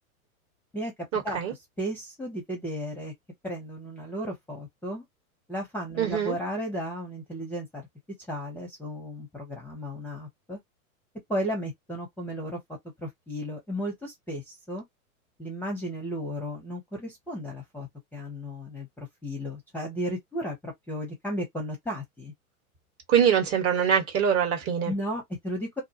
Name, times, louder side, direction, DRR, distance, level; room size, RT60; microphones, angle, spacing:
voice 1, 1.1-1.5 6.0-6.3 23.1-24.9, right 8 dB, 30° right, 1.1 m, -23 dB
voice 2, 1.8-3.1 3.4-5.0 5.5-7.8 8.3-10.6 11.3-12.6 13.0-14.8 15.4-22.3 24.9-25.8, equal, 5° left, 0.7 m, -34 dB
2.4 x 2.2 x 2.7 m
hypercardioid pair, 115°, 44 cm